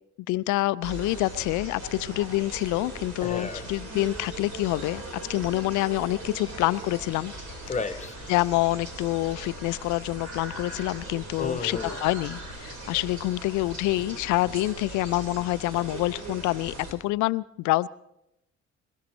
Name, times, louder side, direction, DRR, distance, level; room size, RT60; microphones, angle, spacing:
voice 1, 0.3-5.0 5.3-7.3 8.3-17.9, left 19 dB, 60° left, 0.5 m, -27 dB
sound 1, 0.8-16.9, right 2 dB, 60° right, 4.3 m, -39 dB
voice 2, 3.2-3.6 7.7-8.3 11.4-12.0, left 4 dB, 20° left, 1.1 m, -32 dB
27.0 x 15.0 x 3.1 m
hypercardioid pair, 45°, 33 cm